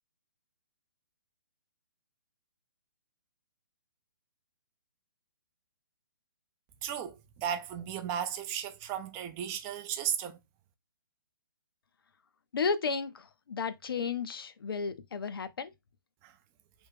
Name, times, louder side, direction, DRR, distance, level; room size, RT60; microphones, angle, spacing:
voice 1, 6.8-10.4 16.2-16.3, right 9 dB, 20° right, 0.4 m, -35 dB
voice 2, 12.5-15.7, left 5 dB, 75° left, 0.5 m, -33 dB
3.4 x 2.3 x 3.3 m
figure-of-eight pair, 135°, 12 cm